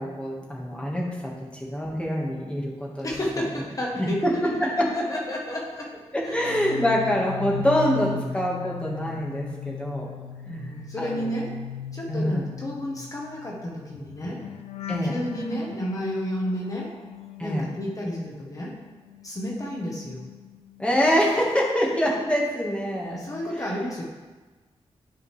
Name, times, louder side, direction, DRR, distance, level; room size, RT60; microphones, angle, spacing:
voice 1, 0.0-3.2 3.9-5.1 6.1-10.1 10.5-10.6 11.0-11.3 12.1-12.5 14.9-15.2 17.4-17.7 20.8-23.2 23.5-23.7, equal, 10° left, -3 dB, 1.5 m, -25 dB
voice 2, 3.0-6.0 6.2-6.6 10.4-11.5 11.9-14.4 15.0-16.9 17.4-18.7 19.2-20.3 23.1-24.0, equal, 30° left, -3 dB, 1.1 m, -31 dB
sound 1, 6.3-18.6 18.9-20.9 21.2-21.6, left 8 dB, 65° left, 0.4 m, -38 dB
11.0 x 4.9 x 3.3 m, 1.3 s
wide cardioid pair, 135°, 11 cm